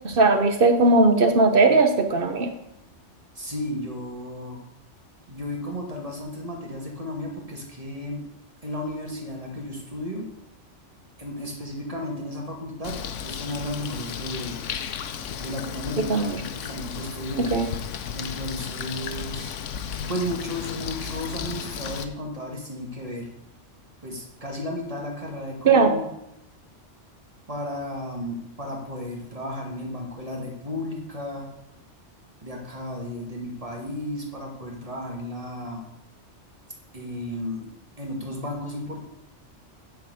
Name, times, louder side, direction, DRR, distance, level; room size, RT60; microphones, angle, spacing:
voice 1, 0.0-2.5 16.1-16.3 17.4-17.7 25.6-25.9, right 3 dB, 50° right, 6 dB, 1.1 m, -18 dB
voice 2, 3.3-4.6 5.3-8.2 8.6-10.3 11.2-14.6 15.4-17.5 18.1-19.6 20.1-23.3 24.0-26.1 27.5-31.5 32.4-35.9 36.9-37.6 38.0-39.1, left 1 dB, 30° right, 0 dB, 2.2 m, -34 dB
Bird, 12.8-22.0, left 7 dB, 85° left, 1.1 m, -34 dB
9.6 x 4.7 x 7.7 m, 0.87 s
omnidirectional pair, 1.2 m